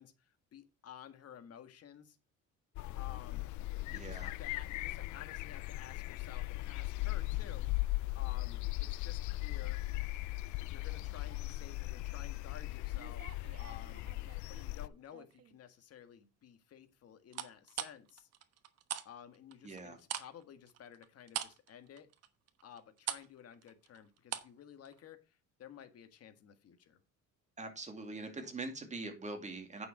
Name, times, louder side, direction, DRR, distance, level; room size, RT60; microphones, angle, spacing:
voice 1, 0.0-2.2 3.0-3.5 3.8-7.7 8.1-9.8 10.6-14.1 14.5-18.3 19.0-22.1 22.6-27.0, left 9 dB, 50° left, 9 dB, 1.6 m, -54 dB
sound 1, 2.8-14.9, left 19 dB, 65° left, 0.5 m, -38 dB
voice 2, 3.9-4.3 19.6-20.0 27.6-29.9, right 3 dB, 20° right, 5 dB, 2.4 m, -43 dB
sound 2, 12.9-14.6 15.1-15.6 17.3-19.1 19.3-24.6 24.8-25.0, right 10 dB, 50° right, 1.2 m, -43 dB
9.0 x 6.7 x 4.9 m, 0.29 s
cardioid pair, 120°, 32 cm